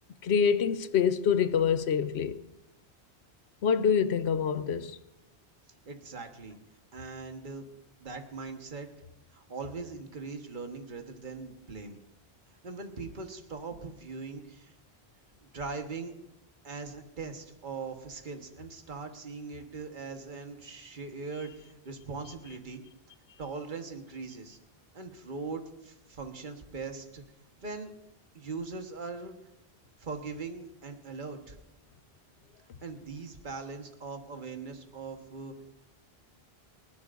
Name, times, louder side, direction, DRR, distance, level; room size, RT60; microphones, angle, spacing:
voice 1, 0.2-2.4 3.6-5.0, left 7 dB, 85° left, 1.0 m, -26 dB
voice 2, 5.9-6.6 6.9-7.6 8.0-8.9 9.3-12.0 12.6-14.7 15.4-16.1 16.6-22.8 23.4-24.6 24.9-27.2 27.6-27.9 28.3-29.3 30.0-31.6 32.8-35.5, right 4 dB, 50° right, 1.5 m, -40 dB
29.0 x 11.0 x 2.6 m
omnidirectional pair, 1.1 m